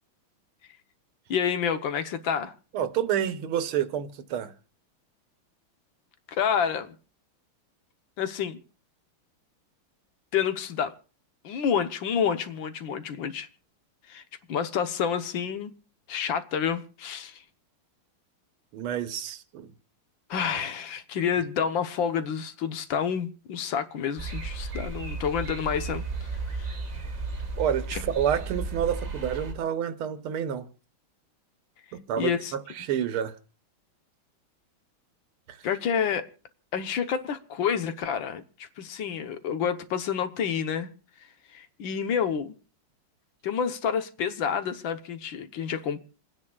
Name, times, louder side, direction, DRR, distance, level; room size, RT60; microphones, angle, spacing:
voice 1, 1.3-2.5 6.3-6.9 8.2-8.6 10.3-10.9 11.4-13.5 14.1-14.2 14.5-15.7 16.1-17.4 20.3-26.0 26.5-26.8 27.9-28.0 32.2-32.5 35.6-36.3 36.7-40.9 41.5-42.5 43.4-46.0, left 7 dB, 65° left, 1.6 m, -29 dB
voice 2, 2.7-4.5 18.7-19.7 27.6-30.7 31.9-33.3 35.5-35.6, right 9 dB, 80° right, 1.8 m, -29 dB
sound 1, 24.2-29.5, right 3 dB, 25° right, 0.9 m, -34 dB
28.0 x 9.7 x 2.3 m
omnidirectional pair, 2.3 m